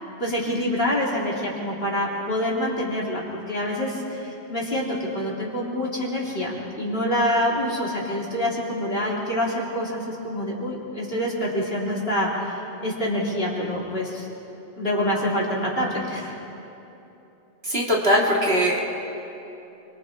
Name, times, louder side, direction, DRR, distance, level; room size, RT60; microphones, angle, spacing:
voice 1, 0.2-4.9 5.1-14.3 14.8-16.3, left 1 dB, 55° left, -5 dB, 3.8 m, -26 dB
voice 2, 17.6-18.8, equal, 60° right, -3 dB, 3.2 m, -20 dB
29.5 x 24.0 x 3.8 m, 3.0 s
omnidirectional pair, 1.2 m